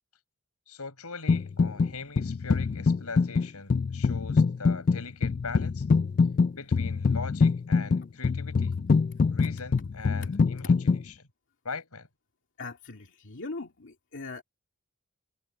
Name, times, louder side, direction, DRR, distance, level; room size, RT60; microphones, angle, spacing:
voice 1, 0.7-5.8 6.5-8.8 9.3-11.3 11.6-12.1, left 4 dB, 90° left, 5.0 m, -41 dB
sound 1, 1.3-1.9 2.2-11.0, left 4 dB, 40° left, 0.3 m, -24 dB
voice 2, 12.6-14.4, left 3 dB, 60° left, 2.2 m, -40 dB
head